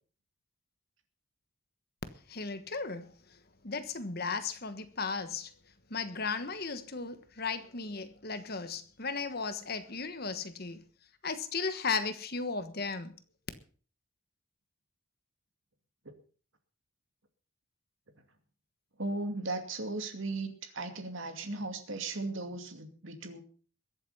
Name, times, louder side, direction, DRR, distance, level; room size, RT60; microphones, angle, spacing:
voice 1, 2.3-3.1 3.6-5.5 5.9-10.8 11.2-13.1, left 4 dB, 45° left, 1.3 m, -35 dB
voice 2, 19.0-23.4, right 2 dB, 65° right, 2.4 m, -37 dB
22.0 x 8.1 x 5.6 m
head